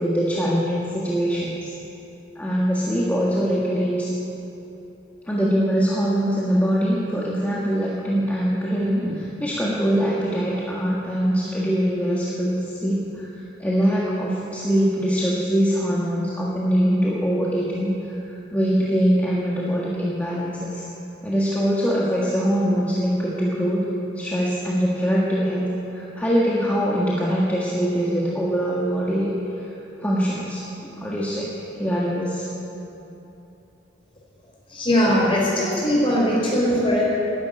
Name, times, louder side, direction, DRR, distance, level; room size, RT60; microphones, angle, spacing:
voice 1, 0.0-1.7 2.3-4.1 5.3-13.3 13.6-18.1 18.5-20.8 21.2-23.8 24.1-29.3 29.6-29.7 30.0-31.5 31.8-32.5, equal, 10° left, -6 dB, 1.7 m, -23 dB
voice 2, 34.7-37.0, equal, 30° left, -5 dB, 4.9 m, -20 dB
13.0 x 11.0 x 9.6 m, 3.0 s
head